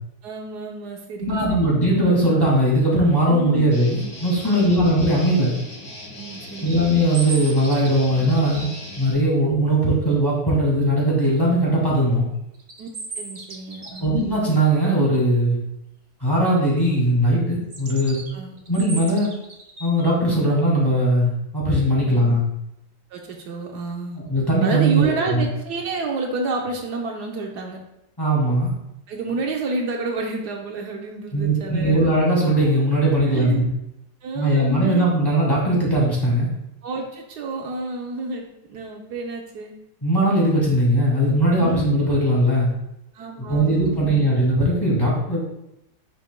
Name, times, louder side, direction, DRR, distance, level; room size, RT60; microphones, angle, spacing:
voice 1, 0.2-1.6 3.3-3.7 4.4-4.8 6.2-6.9 12.8-12.9 13.2-14.1 18.3-18.5 22.0-22.2 23.1-24.2 24.6-27.8 29.1-32.1 33.2-33.7 34.2-35.1 36.8-39.7 41.6-42.0 43.1-44.3, right 3 dB, 70° right, 1 dB, 1.3 m, -30 dB
voice 2, 1.2-5.6 6.6-8.7 9.0-12.3 14.0-15.6 16.2-18.2 18.7-19.3 19.8-22.5 24.3-25.4 28.2-28.7 31.3-33.7 34.4-36.5 40.0-42.7 43.5-45.4, right 1 dB, 15° left, -5 dB, 2.1 m, -19 dB
Guitar, 3.7-9.1, left 1 dB, 80° left, 3.0 m, -38 dB
sound 1, 6.4-9.1 12.5-14.2 17.7-20.2, right 3 dB, 35° right, 0.7 m, -37 dB
9.8 x 6.1 x 2.2 m, 0.85 s
omnidirectional pair, 1.9 m